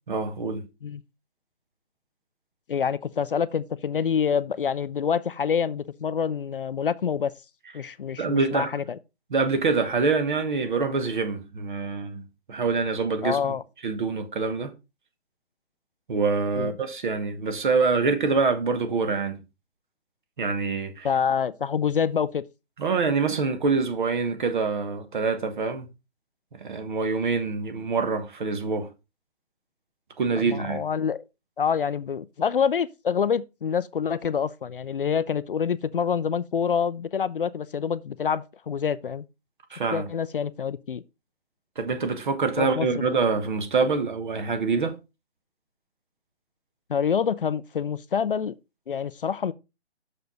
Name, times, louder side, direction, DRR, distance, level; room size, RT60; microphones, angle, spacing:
voice 1, 0.1-0.6 8.2-8.7 9.3-12.2 12.5-13.6 13.8-14.7 16.1-19.4 20.4-21.1 22.8-25.9 26.6-28.9 30.2-30.8 39.7-40.1 41.8-44.9, right 4 dB, 45° right, 1.4 m, -25 dB
voice 2, 2.7-7.3 7.7-9.0 13.2-13.6 16.6-16.7 21.0-22.4 30.3-31.2 31.6-39.2 39.9-41.0 42.6-43.0 46.9-48.5 48.9-49.5, left 7 dB, 55° left, 0.5 m, -26 dB
6.9 x 6.6 x 3.9 m
hypercardioid pair, 170°, 33 cm